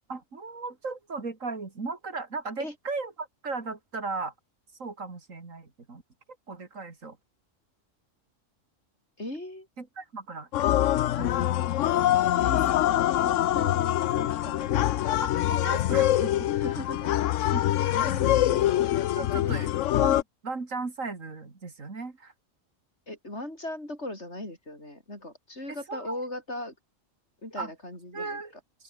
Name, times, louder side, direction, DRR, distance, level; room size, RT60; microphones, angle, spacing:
voice 1, 0.1-4.3 4.8-6.0 6.5-7.2 9.8-10.7 11.2-11.5 12.5-12.6 15.2-16.5 17.5-18.2 19.1-19.7 20.0-22.3 25.7-26.2 27.6-27.7 28.1-28.5, right 3 dB, 90° right, 3.3 m, -36 dB
voice 2, 9.2-9.7 12.4-14.8 16.5-17.1 17.9-18.7 19.3-19.7 23.1-26.7 27.4-28.4, left 1 dB, 60° left, 8.0 m, -38 dB
sound 1, 10.5-20.2, left 13 dB, 75° left, 1.0 m, -24 dB
open air
omnidirectional pair, 1.3 m